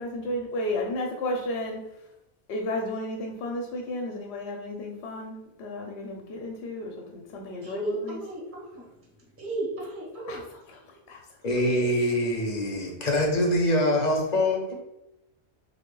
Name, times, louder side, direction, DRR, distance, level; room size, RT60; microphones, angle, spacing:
voice 1, 0.0-2.1 2.5-8.2 10.3-11.4, left 1 dB, 80° left, 1 dB, 0.8 m, -33 dB
voice 2, 7.6-8.9 9.2-10.4 11.4-11.5, right 2 dB, 15° right, -3 dB, 0.7 m, -34 dB
voice 3, 11.4-14.7, left 1 dB, 45° left, 0 dB, 0.7 m, -24 dB
3.4 x 2.0 x 3.7 m, 0.88 s
omnidirectional pair, 1.1 m